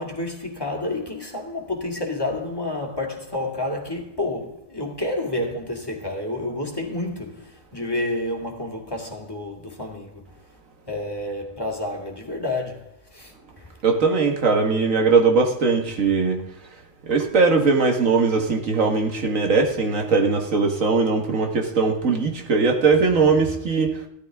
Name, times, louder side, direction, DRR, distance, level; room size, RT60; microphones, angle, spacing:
voice 1, 0.0-10.3 10.9-13.7, left 2 dB, 20° left, 2.2 m, -29 dB
voice 2, 13.8-16.4 17.1-24.0, right 4 dB, 85° right, 2.0 m, -20 dB
15.5 x 13.5 x 3.5 m
omnidirectional pair, 1.3 m